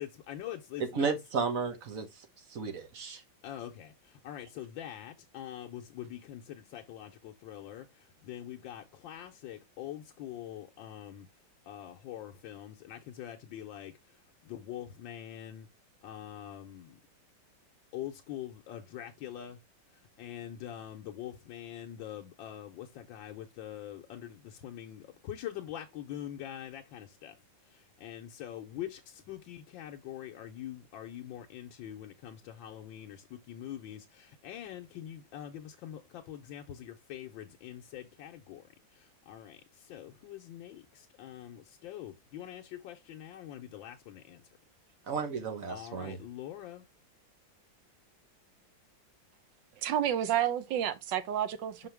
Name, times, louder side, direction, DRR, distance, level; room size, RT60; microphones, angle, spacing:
voice 1, 0.0-1.2 3.4-11.3 11.6-15.7 16.0-17.0 17.9-19.6 19.9-27.4 27.6-44.4 45.7-46.9 51.8-51.9, left 11 dB, 85° left, 1.5 m, -44 dB
voice 2, 0.9-2.1 2.5-3.2 45.1-46.2, right 5 dB, 50° right, 1.4 m, -33 dB
voice 3, 49.8-51.9, right 10 dB, 75° right, 1.5 m, -30 dB
5.7 x 4.8 x 3.4 m
omnidirectional pair, 2.0 m